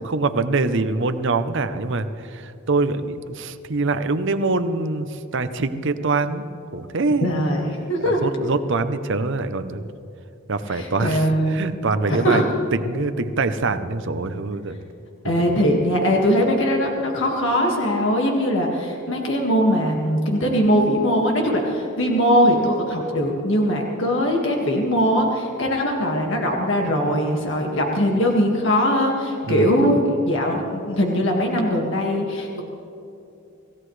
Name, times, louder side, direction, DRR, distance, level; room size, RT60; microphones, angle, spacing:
voice 1, 0.0-7.3 8.1-9.9 10.5-12.4 12.7-14.8 15.2-15.5 29.4-29.9, right 3 dB, 55° right, 11 dB, 0.7 m, -24 dB
voice 2, 7.2-8.2 10.7-11.8 12.1-12.5 15.2-32.6, equal, 60° left, 0 dB, 1.9 m, -21 dB
25.5 x 16.0 x 3.3 m, 2.8 s
head